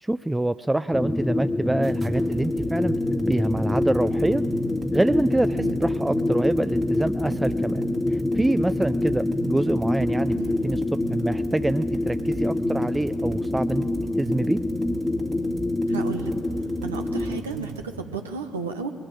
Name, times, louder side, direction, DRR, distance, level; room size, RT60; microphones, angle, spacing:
voice 1, 0.0-4.4 4.9-7.8 8.1-10.3 10.6-10.8 11.1-13.8 14.2-14.6, right 1 dB, 10° right, 13 dB, 0.4 m, -25 dB
sound 1, 0.9-17.4, left 2 dB, 20° left, 0.9 m, -26 dB
sound 2, 1.8-17.8, right 4 dB, 45° right, 2.3 m, -38 dB
voice 2, 15.9-16.3 16.8-18.9, right 5 dB, 90° right, 4 dB, 0.8 m, -33 dB
21.5 x 14.0 x 8.9 m, 2.3 s
hypercardioid pair, 45°, 0 cm